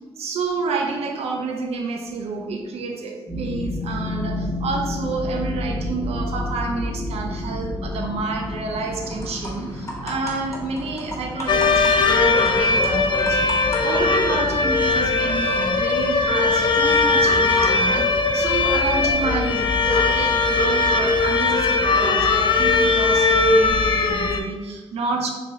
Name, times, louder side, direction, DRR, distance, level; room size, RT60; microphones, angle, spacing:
voice 1, 0.2-25.3, right 3 dB, 85° right, 2 dB, 0.6 m, -29 dB
sound 1, 3.3-19.2, left 1 dB, 30° right, 1.0 m, -32 dB
sound 2, 8.4-14.9, left 1 dB, 30° left, 1.1 m, -38 dB
sound 3, 11.5-24.4, left 3 dB, 50° left, 0.4 m, -19 dB
2.9 x 2.9 x 3.6 m, 1.2 s
cardioid pair, 75°, 10 cm